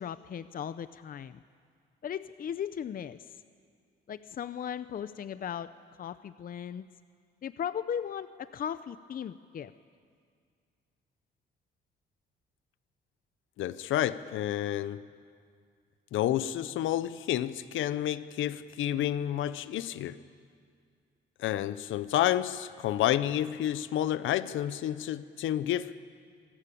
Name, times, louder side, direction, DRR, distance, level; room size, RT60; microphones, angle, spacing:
voice 1, 0.0-1.4 2.0-3.4 4.1-5.7 6.0-6.9 7.4-9.7, left 8 dB, 45° left, 0.6 m, -37 dB
voice 2, 13.6-15.0 16.1-20.2 21.4-25.9, left 12 dB, 80° left, 0.8 m, -30 dB
26.0 x 19.5 x 8.6 m
cardioid pair, 90°, 20 cm